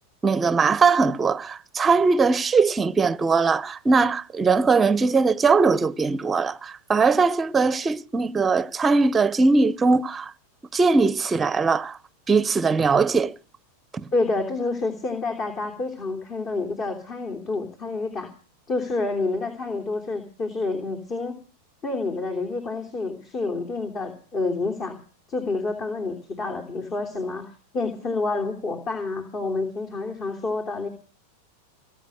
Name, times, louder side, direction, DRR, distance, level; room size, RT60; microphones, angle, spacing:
voice 1, 0.2-10.3 10.7-12.0 12.3-13.3 13.9-14.1, right 4 dB, 20° right, 0.9 m, -20 dB
voice 2, 14.1-18.3 18.7-21.4 21.8-25.0 25.3-30.9, left 3 dB, 35° left, 3.2 m, -28 dB
21.0 x 9.8 x 6.5 m
hypercardioid pair, 100°, 0 cm